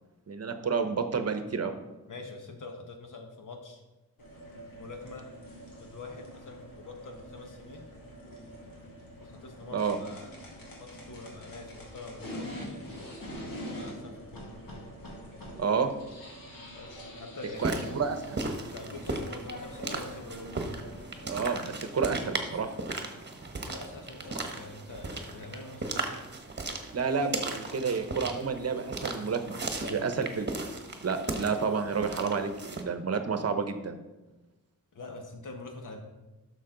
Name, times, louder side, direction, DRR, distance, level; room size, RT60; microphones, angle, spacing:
voice 1, 0.3-1.7 9.7-10.0 15.6-15.9 17.6-18.4 21.3-22.7 26.9-29.6 29.9-30.5 31.0-34.0, right 5 dB, 45° right, 8 dB, 0.9 m, -30 dB
voice 2, 2.1-3.8 4.7-5.3 5.8-7.8 9.2-10.3 10.8-12.9 13.5-14.5 16.7-18.0 18.6-20.7 23.5-26.1 29.8-30.2 34.9-36.0, left 3 dB, 65° left, 3 dB, 1.5 m, -45 dB
sound 1, 4.2-21.7, equal, 85° left, 2.4 m, -45 dB
sound 2, 17.6-32.8, right 2 dB, 30° right, 1.2 m, -37 dB
11.5 x 6.4 x 3.9 m, 1.1 s
wide cardioid pair, 100°, 33 cm